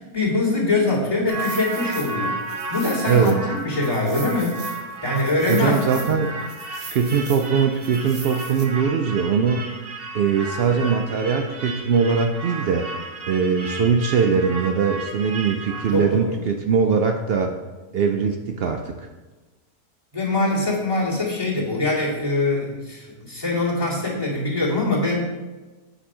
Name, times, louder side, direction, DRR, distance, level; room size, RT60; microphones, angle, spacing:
voice 1, 0.0-2.3 2.7-4.6 5.0-6.2 15.9-16.4 20.1-25.2, left 2 dB, 20° left, -4 dB, 2.4 m, -23 dB
sound 1, 1.3-16.1, right 2 dB, 40° right, 1.2 m, -33 dB
voice 2, 3.1-3.4 5.5-6.4 6.9-9.7 10.1-12.9 13.3-17.5 17.9-19.1, right 6 dB, 85° right, 4 dB, 0.5 m, -21 dB
8.7 x 5.4 x 4.8 m, 1.2 s
omnidirectional pair, 1.6 m